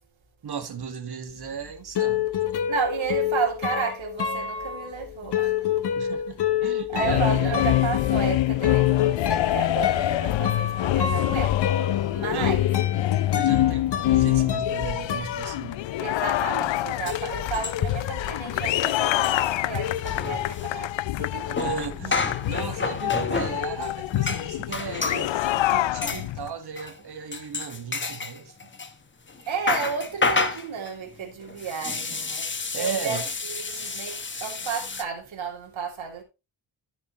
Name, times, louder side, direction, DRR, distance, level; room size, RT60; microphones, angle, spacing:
voice 1, 0.4-2.2 5.9-7.7 12.3-12.6 13.3-15.8 21.5-28.7 32.7-33.2 33.7-34.0, right 6 dB, 55° right, 1.8 m, -35 dB
sound 1, 1.4-16.2 16.5-17.9, left 9 dB, 60° left, 1.2 m, -29 dB
voice 2, 2.7-5.9 6.9-12.7 16.0-21.6 29.5-36.2, right 6 dB, 80° right, 2.9 m, -32 dB
sound 2, 6.9-26.5, left 14 dB, 75° left, 0.5 m, -25 dB
sound 3, 16.7-16.8 17.1-18.1 18.3-18.5 18.7-25.3 26.0-26.3 26.8-27.0 27.3-28.9 29.3-35.0, left 4 dB, 25° left, 1.1 m, -30 dB
13.5 x 6.0 x 3.1 m
wide cardioid pair, 145°, 46 cm